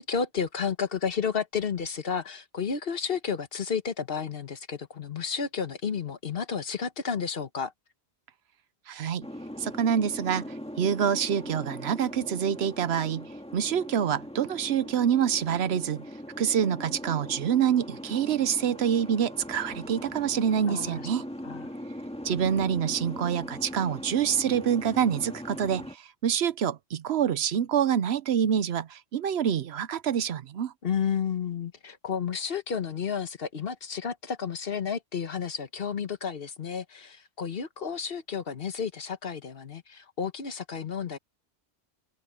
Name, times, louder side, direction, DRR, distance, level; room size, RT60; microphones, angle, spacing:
voice 1, 0.0-7.7 20.7-21.0 21.4-21.7 30.8-41.2, left 6 dB, 60° left, 1.3 m, -32 dB
voice 2, 8.9-9.3 9.6-16.0 16.4-21.2 22.2-30.7, right 8 dB, 75° right, 0.9 m, -26 dB
Boat Water vehicle, 9.2-25.9, equal, 5° left, 1.7 m, -40 dB
open air
omnidirectional pair, 1.1 m